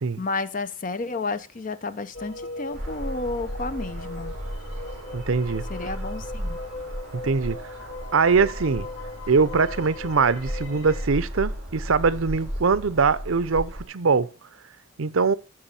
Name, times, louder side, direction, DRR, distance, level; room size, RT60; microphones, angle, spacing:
voice 1, 0.2-4.3 5.7-6.6, left 3 dB, 40° left, 0.6 m, -31 dB
sound 1, 2.1-11.1, left 2 dB, 90° left, 4.6 m, -39 dB
sound 2, 2.7-13.8, equal, 35° right, 4.3 m, -35 dB
voice 2, 5.1-5.6 7.2-7.6 8.1-8.9 9.3-14.3 15.0-15.4, right 5 dB, 80° right, 0.6 m, -22 dB
14.5 x 4.9 x 4.2 m
head